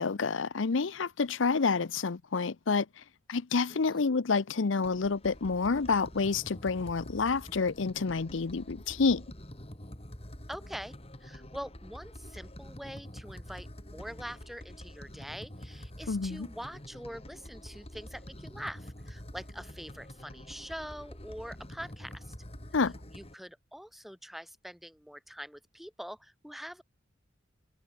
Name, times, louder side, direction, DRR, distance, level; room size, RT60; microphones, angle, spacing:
voice 1, 0.0-2.9 3.3-9.2 16.1-16.5 22.7-22.9, left 4 dB, 80° left, 0.7 m, -28 dB
voice 2, 3.7-4.1 10.5-11.0 11.2-22.4 22.7-22.8 23.1-26.8, equal, ahead, 1.7 m, -44 dB
sound 1, 4.8-23.3, equal, 30° left, 4.8 m, -47 dB
head